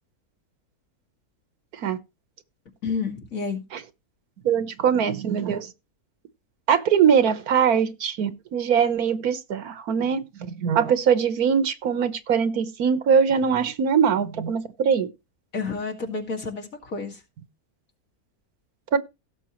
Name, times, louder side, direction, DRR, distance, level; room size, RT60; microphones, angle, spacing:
voice 1, 2.8-3.6 15.5-17.2, left 4 dB, 65° left, 2.6 m, -30 dB
voice 2, 4.4-5.7 6.7-15.1 18.9-19.0, right 7 dB, 80° right, 1.5 m, -22 dB
17.0 x 7.1 x 3.0 m
omnidirectional pair, 1.6 m